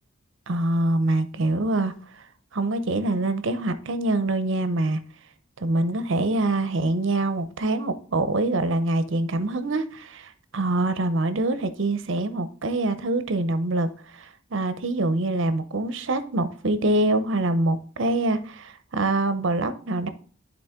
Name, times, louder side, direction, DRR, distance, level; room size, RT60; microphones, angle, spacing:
voice 1, 0.5-1.9 2.5-5.0 5.6-20.1, right 2 dB, 60° right, 0.7 m, -25 dB
11.0 x 4.0 x 3.6 m
head